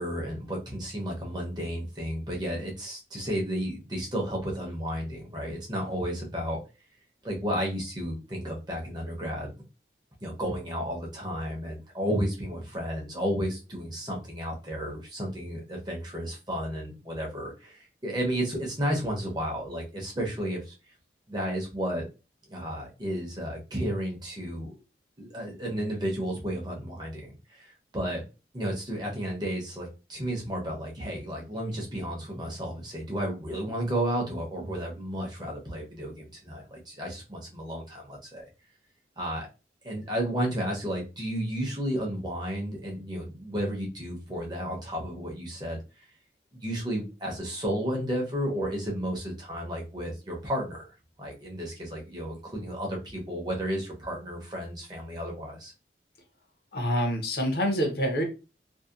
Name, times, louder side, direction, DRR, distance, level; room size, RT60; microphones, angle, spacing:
voice 1, 0.0-6.6 7.2-9.5 10.2-20.7 21.3-22.1 22.5-24.7 25.2-28.2 28.5-38.5 39.2-39.5 39.8-46.0 46.5-50.8 51.2-55.7, equal, 25° right, -1 dB, 0.6 m, -32 dB
voice 2, 56.7-58.2, equal, 60° left, 3 dB, 0.7 m, -26 dB
2.6 x 2.1 x 2.3 m, 0.30 s
head